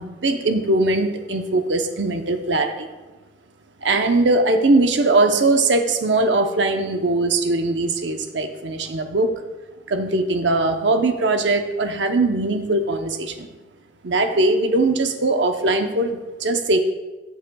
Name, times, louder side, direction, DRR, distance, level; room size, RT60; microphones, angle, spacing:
voice 1, 0.0-2.9 3.8-9.3 9.9-13.5 14.0-16.8, right 2 dB, 70° right, 6 dB, 0.8 m, -20 dB
13.5 x 7.4 x 2.3 m, 1.2 s
head